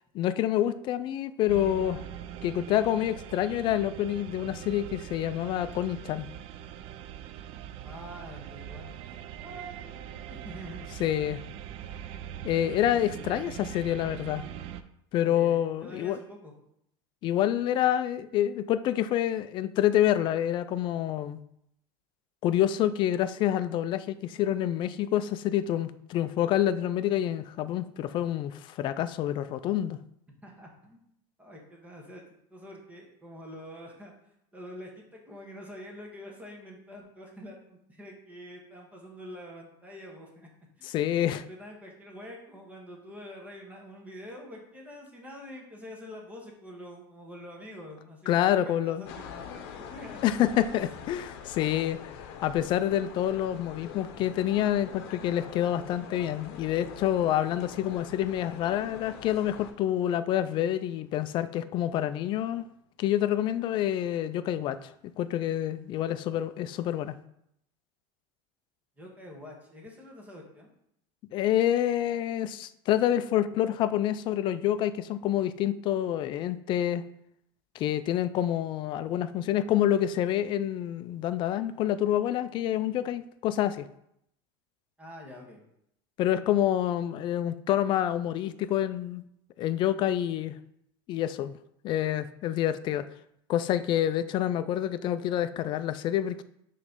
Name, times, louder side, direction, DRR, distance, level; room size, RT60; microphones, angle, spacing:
voice 1, 0.1-2.0 2.4-6.3 11.0-11.4 12.4-14.4 15.1-16.2 17.2-21.4 22.4-30.0 40.8-41.4 48.3-49.1 50.2-62.7 63.0-67.2 71.3-77.0 77.7-83.9 86.2-89.2 89.6-90.5 91.1-91.6 91.8-93.1 93.5-96.4, left 11 dB, 35° left, 13 dB, 0.3 m, -27 dB
sound 1, 1.5-14.8, right 10 dB, 45° right, 0.4 m, -42 dB
voice 2, 7.8-11.0 12.6-13.5 13.8-14.0 15.2-16.5 30.4-31.1 31.4-32.2 32.5-34.1 34.5-40.5 40.8-50.4 69.0-70.7 85.0-85.6, equal, 10° right, -1 dB, 1.4 m, -46 dB
sound 2, 49.1-59.7, left 7 dB, 70° left, 0.8 m, -44 dB
6.7 x 3.1 x 5.2 m, 0.75 s
supercardioid pair, 145°, 14 cm